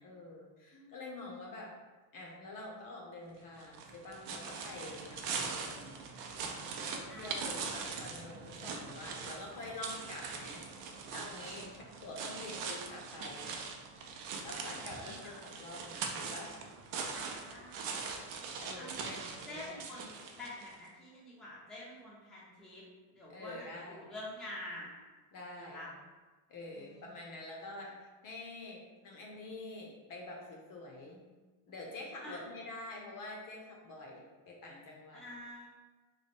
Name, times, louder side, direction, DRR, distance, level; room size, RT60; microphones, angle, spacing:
voice 1, 0.0-1.7 2.1-6.0 6.8-13.5 14.4-15.3 15.6-16.5 18.6-19.8 23.3-24.1 25.3-25.8 26.5-31.2 31.7-35.2, left 2 dB, 40° left, -1 dB, 0.7 m, -47 dB
sound 1, 3.6-20.8, right 5 dB, 65° right, 0.6 m, -42 dB
voice 2, 7.1-7.6 11.9-12.1 15.0-15.4 17.1-18.3 18.8-19.2 19.5-22.8 23.1-25.0 25.6-25.9 26.7-27.3 32.2-32.4 35.1-35.7, left 1 dB, ahead, -7 dB, 0.6 m, -48 dB
3.2 x 2.2 x 4.1 m, 1.3 s
cardioid pair, 145°, 49 cm